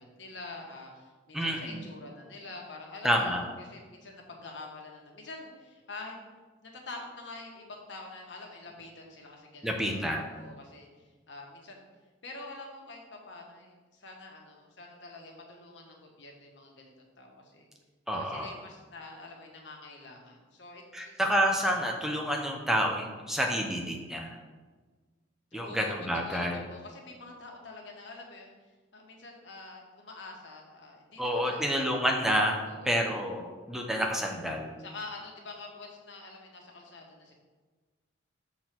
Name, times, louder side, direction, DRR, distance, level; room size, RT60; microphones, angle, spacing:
voice 1, 0.0-6.3 6.6-10.9 11.3-11.9 12.2-17.7 18.1-21.2 25.5-28.5 28.9-31.9 32.6-33.1 34.8-37.3, left 2 dB, 65° left, 1 dB, 1.3 m, -46 dB
voice 2, 1.3-1.8 3.0-3.5 9.6-10.2 18.1-18.5 20.9-24.4 25.5-26.6 31.2-34.7, equal, ahead, 2 dB, 0.7 m, -29 dB
6.2 x 3.9 x 6.0 m, 1.3 s
head